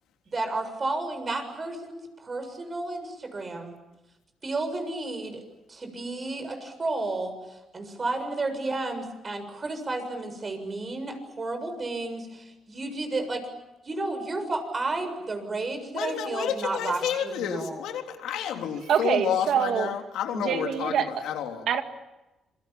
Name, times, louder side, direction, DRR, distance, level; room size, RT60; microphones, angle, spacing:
voice 1, 0.3-3.8 4.4-5.4 5.7-13.5 13.8-17.8, right 2 dB, 35° right, 7 dB, 7.1 m, -32 dB
voice 2, 15.9-21.6, left 9 dB, 85° left, 3 dB, 3.5 m, -30 dB
voice 3, 18.9-19.9 20.5-21.0 21.7-21.8, right 9 dB, 75° right, 7 dB, 2.1 m, -24 dB
27.0 x 23.5 x 8.8 m, 1.0 s
cardioid pair, 90°, 0 cm